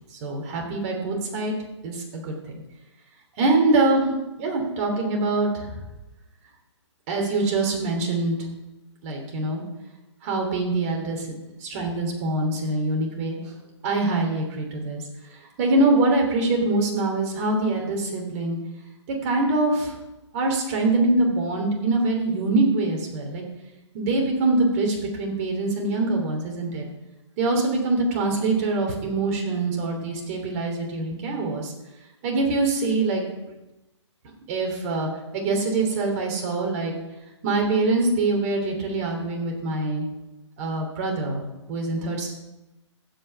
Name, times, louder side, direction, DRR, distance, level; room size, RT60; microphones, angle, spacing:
voice 1, 0.2-1.5 1.8-2.5 3.4-4.1 4.4-5.7 7.1-8.4 9.0-9.6 10.2-11.3 11.6-13.4 13.8-15.0 15.6-18.6 19.2-19.9 20.3-23.4 23.9-26.9 27.4-31.7 32.2-33.2 34.5-36.9 37.4-40.0 40.6-41.4 41.7-42.3, right 2 dB, 30° right, 1 dB, 3.0 m, -24 dB
15.0 x 5.7 x 6.0 m, 1.0 s
hypercardioid pair, 150°, 16 cm